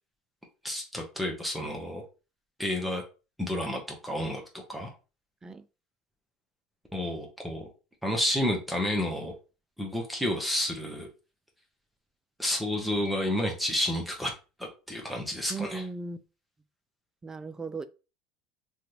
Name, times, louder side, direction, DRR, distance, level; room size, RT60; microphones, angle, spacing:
voice 1, 0.6-2.0 2.6-3.0 3.4-4.9 6.9-7.7 8.0-9.3 9.8-11.1 12.4-14.3 14.6-15.8, left 1 dB, ahead, 0.8 m, -30 dB
voice 2, 15.5-16.2 17.2-17.8, right 3 dB, 20° right, 0.4 m, -36 dB
3.1 x 2.4 x 2.8 m
hypercardioid pair, 85°, 3 cm